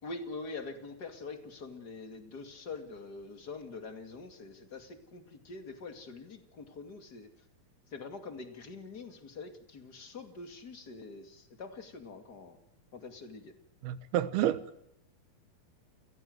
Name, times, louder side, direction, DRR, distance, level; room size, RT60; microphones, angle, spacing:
voice 1, 0.0-7.3 7.9-12.6 12.9-13.5, left 3 dB, 30° left, 2.3 m, -44 dB
voice 2, 13.8-14.8, right 12 dB, 85° right, 3.2 m, -30 dB
30.0 x 16.5 x 8.0 m
omnidirectional pair, 4.4 m